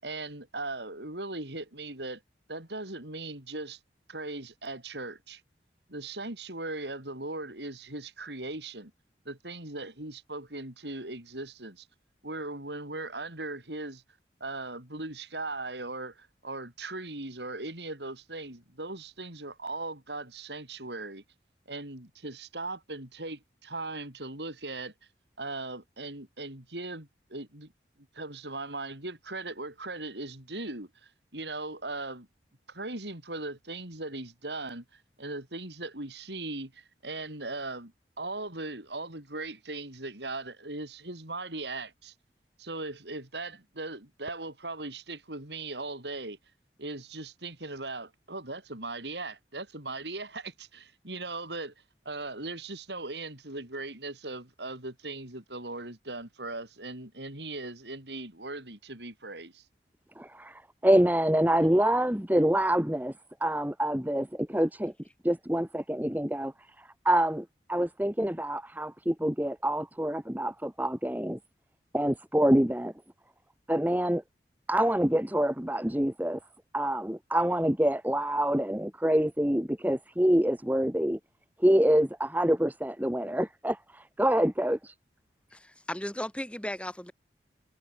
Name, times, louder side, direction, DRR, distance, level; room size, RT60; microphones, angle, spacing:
voice 1, 0.0-2.2 2.5-3.8 4.1-5.4 5.9-8.9 9.2-11.9 12.2-14.0 14.4-21.2 21.7-24.9 25.4-27.7 28.1-32.3 32.7-37.9 38.2-42.1 42.6-46.4 46.8-51.7 52.0-59.7, right 2 dB, 75° right, 5.9 m, -39 dB
voice 2, 60.2-63.1 63.4-64.9 65.2-66.5 66.8-71.4 71.9-72.9 73.7-74.2 74.7-76.4 76.7-81.2 81.6-84.9, right 1 dB, 10° right, 1.4 m, -26 dB
voice 3, 85.5-87.1, left 1 dB, 5° left, 6.0 m, -36 dB
head